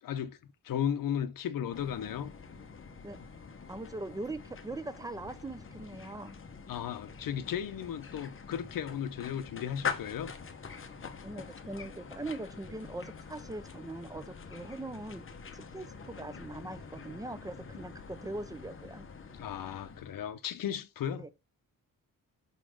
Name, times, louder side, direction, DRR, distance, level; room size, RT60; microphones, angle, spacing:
voice 1, 0.0-0.4 0.6-2.3 6.7-10.3 19.4-21.3, left 9 dB, 70° left, 0.7 m, -35 dB
sound 1, 1.7-20.3, left 6 dB, 35° left, 0.9 m, -45 dB
voice 2, 3.0-3.4 3.7-6.4 11.2-15.3 15.5-19.1 21.2-21.3, right 2 dB, 10° right, 0.6 m, -41 dB
6.2 x 4.1 x 4.9 m
wide cardioid pair, 130°, 35 cm